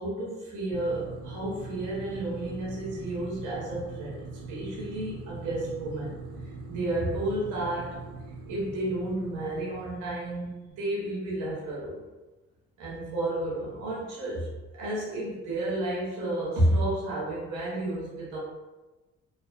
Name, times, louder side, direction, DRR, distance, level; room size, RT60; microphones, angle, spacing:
voice 1, 0.0-6.1 6.4-8.0 8.5-12.0 12.8-14.5 14.8-18.4, right 1 dB, 90° right, -5 dB, 0.8 m, -31 dB
sound 1, 0.7-10.5, right 3 dB, 55° right, 0.5 m, -42 dB
2.4 x 2.3 x 2.2 m, 1.1 s
supercardioid pair, 60°, 30 cm